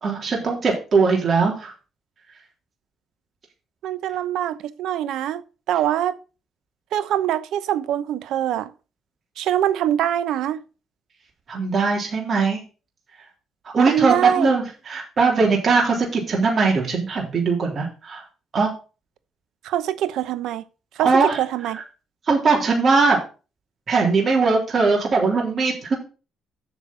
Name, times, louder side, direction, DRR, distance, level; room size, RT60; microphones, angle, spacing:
voice 1, 0.0-1.7 11.5-12.6 13.7-18.2 18.5-18.7 21.0-21.4 21.7-21.8 22.3-23.2 23.9-25.9, right 4 dB, 50° right, 3.8 m, -20 dB
voice 2, 3.8-6.2 6.9-8.7 9.4-10.6 13.8-14.5 19.6-20.6 21.0-21.8, right 11 dB, 85° right, 0.8 m, -24 dB
8.3 x 6.0 x 6.2 m
cardioid pair, 90°, 0 cm